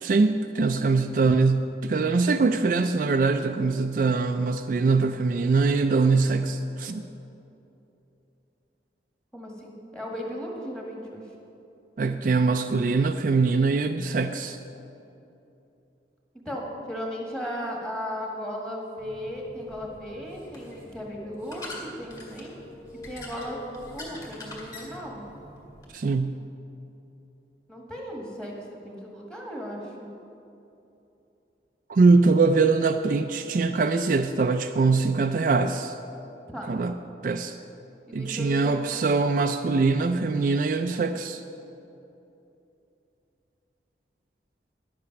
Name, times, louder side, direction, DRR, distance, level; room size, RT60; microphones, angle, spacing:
voice 1, 0.0-7.1 12.0-14.6 25.9-26.4 31.9-35.9 36.7-36.9 37.2-37.6 38.1-41.4, right 4 dB, 45° right, 7 dB, 0.3 m, -23 dB
voice 2, 9.3-11.2 16.3-22.5 23.0-23.6 23.9-25.2 27.7-28.5 28.8-30.1 36.5-36.7 38.1-38.8, equal, 5° left, -1 dB, 1.6 m, -36 dB
sound 1, 19.0-25.9, left 1 dB, 20° left, 2.1 m, -44 dB
11.0 x 8.4 x 5.9 m, 2.9 s
head